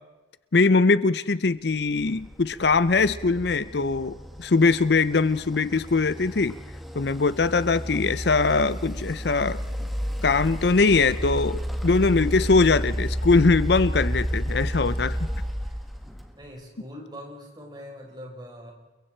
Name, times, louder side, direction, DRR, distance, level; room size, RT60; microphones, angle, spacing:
voice 1, 0.5-6.6 7.0-9.6 10.2-15.1, left 3 dB, 60° left, 16 dB, 0.6 m, -21 dB
sound 1, 2.0-16.5, equal, ahead, 1.7 m, -31 dB
voice 2, 14.9-15.2 15.6-15.8 16.4-18.7, equal, 20° right, 1 dB, 4.8 m, -42 dB
30.0 x 22.5 x 4.5 m, 1.2 s
head